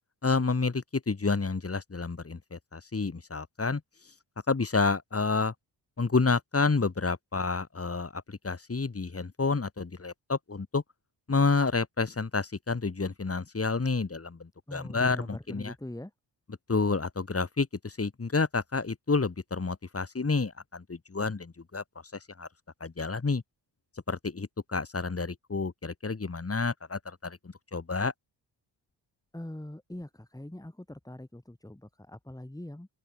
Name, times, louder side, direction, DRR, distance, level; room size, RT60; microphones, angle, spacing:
voice 1, 0.2-3.8 4.5-5.5 6.0-10.8 11.3-15.7 16.7-21.8 22.4-22.5 22.8-23.4 24.1-28.1, left 4 dB, 35° left, 5.7 m, -29 dB
voice 2, 14.7-16.1 29.3-32.9, left 1 dB, 10° left, 6.5 m, -42 dB
open air
cardioid pair, 70°, 42 cm